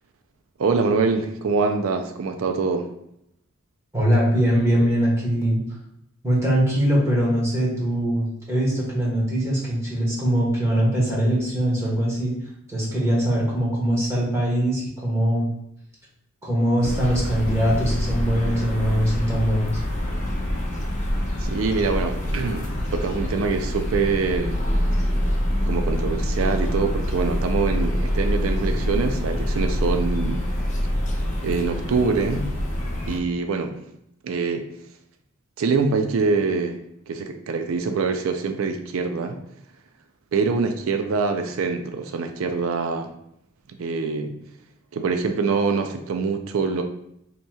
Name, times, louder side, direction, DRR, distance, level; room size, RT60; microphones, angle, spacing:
voice 1, 0.6-2.9 21.4-24.6 25.7-30.4 31.4-32.5 33.1-33.8 34.2-34.7 35.6-36.8 37.1-39.4 40.3-43.1 43.8-44.3 44.9-46.8, right 4 dB, 80° right, 6 dB, 0.4 m, -24 dB
voice 2, 3.9-5.6 6.2-12.3 12.7-15.5 16.4-19.7, equal, 15° right, -5 dB, 1.3 m, -22 dB
sound 1, 16.8-33.2, equal, 35° left, 0.8 m, -25 dB
5.4 x 3.0 x 2.3 m, 0.76 s
head